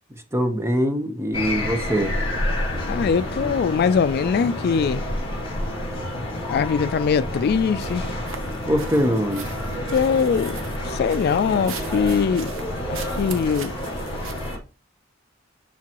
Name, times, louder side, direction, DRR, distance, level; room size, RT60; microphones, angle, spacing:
voice 1, 0.3-2.2 8.7-9.5, equal, 15° right, 0.9 m, -23 dB
sound 1, 1.3-14.6, left 1 dB, 30° left, 3.2 m, -29 dB
voice 2, 2.9-5.1 6.5-8.1 9.9-10.6 10.8-12.5 12.9-13.7, left 6 dB, 50° left, 0.3 m, -22 dB
sound 2, 7.8-14.6, right 4 dB, 75° right, 0.9 m, -39 dB
10.5 x 3.8 x 2.9 m
head